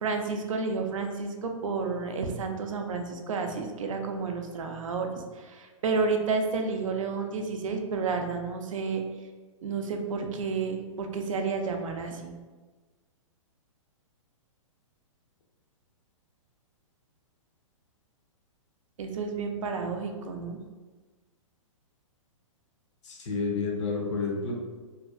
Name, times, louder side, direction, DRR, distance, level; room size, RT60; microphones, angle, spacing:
voice 1, 0.0-5.1 5.3-9.0 9.6-12.3 19.0-20.6, right 4 dB, 75° right, 4 dB, 0.4 m, -31 dB
voice 2, 23.0-24.5, left 4 dB, 60° left, 0 dB, 0.6 m, -30 dB
2.6 x 2.2 x 2.4 m, 1.3 s
hypercardioid pair, 125°, 17 cm